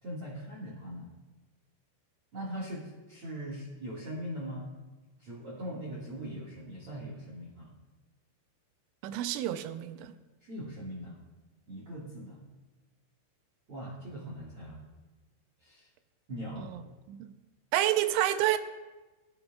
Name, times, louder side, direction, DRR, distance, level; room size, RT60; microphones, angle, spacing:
voice 1, 0.0-1.1 2.3-4.7 5.2-7.7 10.4-11.2 11.7-12.4 13.7-14.8 15.6-15.9 16.3-16.7, equal, 60° right, -5 dB, 1.5 m, -40 dB
voice 2, 9.0-10.1 16.6-16.8 17.1-17.3 17.7-18.6, right 13 dB, 85° right, 10 dB, 2.9 m, -29 dB
19.5 x 14.0 x 2.3 m, 1.2 s
omnidirectional pair, 5.6 m